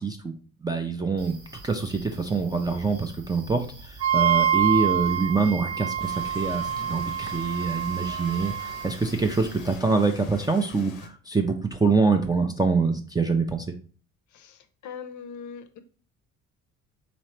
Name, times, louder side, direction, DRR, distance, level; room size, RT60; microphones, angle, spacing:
voice 1, 0.0-1.4 1.6-13.7, right 4 dB, 10° right, 4 dB, 0.4 m, -25 dB
sound 1, 1.2-9.8, right 1 dB, 75° right, 1.2 m, -47 dB
Wind instrument woodwind instrument, 4.0-9.0, right 10 dB, 45° right, 1.0 m, -26 dB
Rain, 6.0-11.1, left 5 dB, 85° left, 0.6 m, -45 dB
voice 2, 14.3-15.8, left 6 dB, 45° left, 9 dB, 0.6 m, -41 dB
4.0 x 3.1 x 3.0 m, 0.39 s
hypercardioid pair, 55°, 40 cm